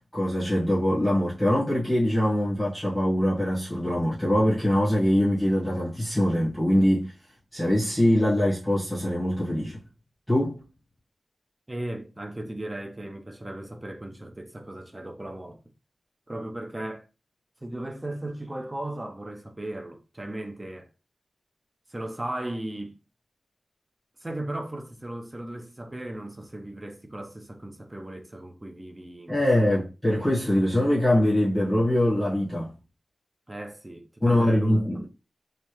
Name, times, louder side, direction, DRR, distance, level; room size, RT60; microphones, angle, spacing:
voice 1, 0.1-7.1 7.5-9.8 10.3-10.6 29.3-32.7 34.2-35.0, left 1 dB, 5° left, 1.3 m, -23 dB
voice 2, 11.7-15.6 16.3-17.0 17.6-20.9 21.9-23.0 24.2-29.8 33.5-34.7, right 1 dB, 20° right, 0.6 m, -37 dB
3.2 x 2.7 x 3.0 m
wide cardioid pair, 90°, 0 cm